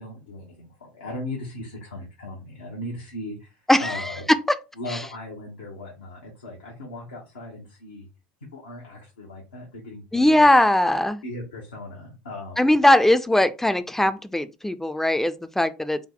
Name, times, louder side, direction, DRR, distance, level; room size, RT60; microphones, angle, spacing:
voice 1, 0.0-4.2 4.8-8.1 8.5-10.5 11.2-12.7, left 1 dB, 90° left, 0.9 m, -38 dB
voice 2, 3.7-4.1 4.9-5.0 10.1-11.2 12.6-16.0, left 1 dB, 5° left, 0.4 m, -20 dB
3.6 x 2.1 x 3.8 m
hypercardioid pair, 80°, 5 cm